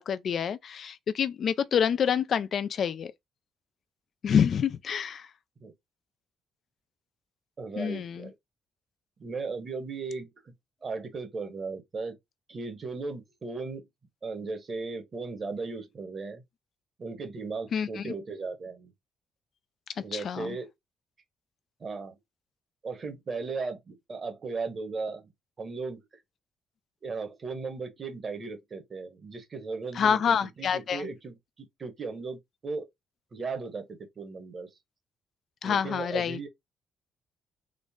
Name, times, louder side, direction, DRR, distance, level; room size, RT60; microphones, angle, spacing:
voice 1, 0.0-3.1 4.2-5.3 7.8-8.3 17.7-18.1 20.1-20.6 29.9-31.1 35.6-36.4, left 7 dB, 60° left, 0.4 m, -27 dB
voice 2, 7.6-8.3 9.2-10.5 10.8-12.2 12.5-13.9 14.2-16.4 17.0-18.9 20.0-20.7 21.8-22.2 22.8-25.3 25.6-26.0 27.0-32.9 33.3-34.7 35.6-36.5, right 4 dB, 40° right, 1.3 m, -36 dB
3.8 x 2.0 x 3.5 m
cardioid pair, 90°, 0 cm